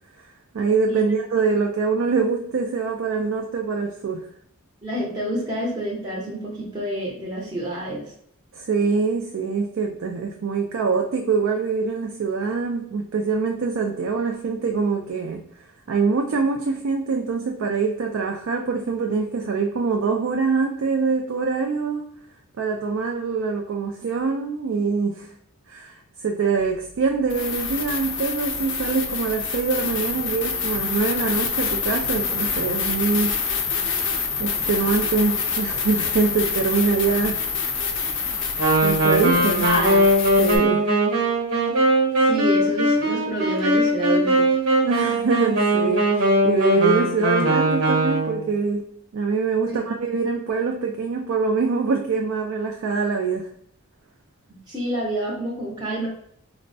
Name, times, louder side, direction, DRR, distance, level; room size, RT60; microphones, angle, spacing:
voice 1, 0.2-4.3 8.5-15.4 15.9-22.0 22.6-25.3 25.7-33.4 34.4-37.4 38.8-39.7 40.4-40.9 44.8-53.5, right 4 dB, 65° right, 2 dB, 0.3 m, -24 dB
voice 2, 4.8-8.0 39.6-40.0 42.2-44.5 49.7-49.8 54.7-56.1, right 1 dB, 20° right, -5 dB, 0.6 m, -28 dB
sound 1, 26.6-26.7 27.3-40.6, left 5 dB, 55° left, 0.4 m, -26 dB
Wind instrument woodwind instrument, 38.6-48.5, right 1 dB, 85° right, 1.0 m, -20 dB
4.2 x 2.0 x 2.5 m, 0.68 s
head